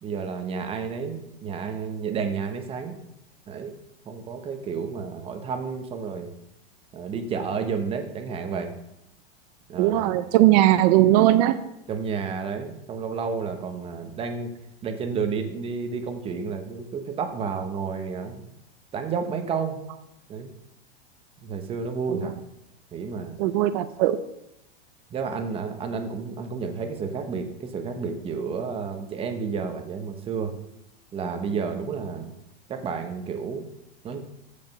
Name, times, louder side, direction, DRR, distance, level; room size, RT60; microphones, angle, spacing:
voice 1, 0.0-2.9 3.5-3.7 4.1-6.3 6.9-8.7 9.7-10.1 11.9-14.5 14.8-18.5 18.9-19.8 20.3-20.5 21.4-22.3 22.9-23.4 25.1-30.5 31.1-32.3 32.7-33.6 34.0-34.2, right 5 dB, 20° right, 6 dB, 1.1 m, -31 dB
voice 2, 9.8-11.5 23.4-24.2, right 14 dB, 45° right, 13 dB, 0.6 m, -19 dB
15.0 x 5.3 x 5.4 m, 0.85 s
supercardioid pair, 155°, 31 cm